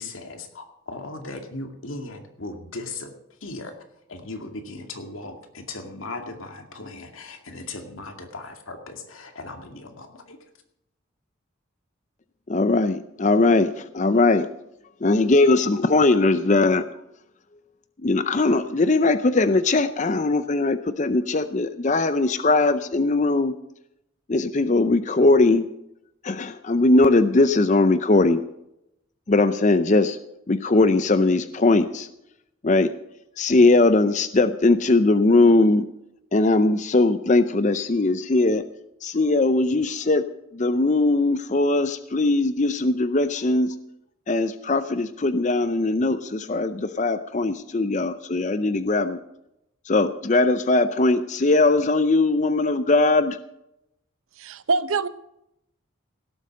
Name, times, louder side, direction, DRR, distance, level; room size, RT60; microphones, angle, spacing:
voice 1, 0.0-3.1 3.4-3.8 4.1-10.4, left 2 dB, 80° left, 4 dB, 2.3 m, -37 dB
voice 2, 12.5-14.5 15.0-16.8 18.0-23.5 24.3-25.6 26.2-28.4 29.3-30.2 30.5-32.1 32.6-32.9 33.4-35.9 36.3-38.6 39.0-40.2 40.5-43.7 44.3-49.2 49.9-53.4, left 2 dB, 35° left, 11 dB, 0.5 m, -20 dB
voice 3, 54.4-55.1, right 4 dB, 80° right, 14 dB, 0.8 m, -24 dB
17.0 x 8.1 x 6.6 m, 0.82 s
head